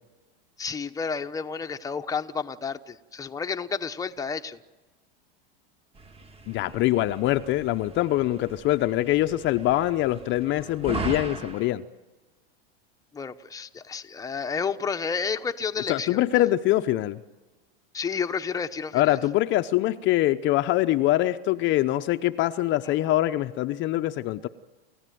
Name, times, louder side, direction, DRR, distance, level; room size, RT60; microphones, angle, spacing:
voice 1, 0.6-4.6 13.1-16.4 17.9-19.2 22.8-22.9, left 5 dB, 10° left, 6 dB, 1.0 m, -31 dB
sound 1, 5.9-11.7, right 3 dB, 20° right, 1.7 m, -39 dB
voice 2, 6.5-11.8 15.9-17.2 18.9-24.5, left 15 dB, 35° left, 9 dB, 0.7 m, -24 dB
29.5 x 16.0 x 9.3 m, 1.2 s
supercardioid pair, 125°, 31 cm